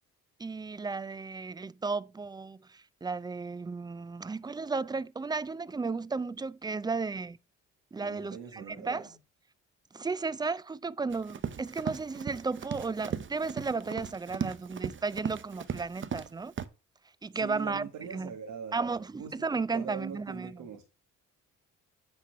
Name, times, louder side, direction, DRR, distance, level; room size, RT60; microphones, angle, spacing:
voice 1, 0.4-7.4 7.9-9.1 9.9-16.5 17.2-18.3 18.7-20.6, right 4 dB, 15° right, 0.4 m, -34 dB
voice 2, 8.0-9.1 17.3-18.9 19.2-20.8, right 7 dB, 80° right, 1.8 m, -42 dB
Run, 11.1-16.3 16.6-16.7, right 7 dB, 40° right, 0.8 m, -37 dB
9.3 x 4.3 x 5.7 m
cardioid pair, 90°, 30 cm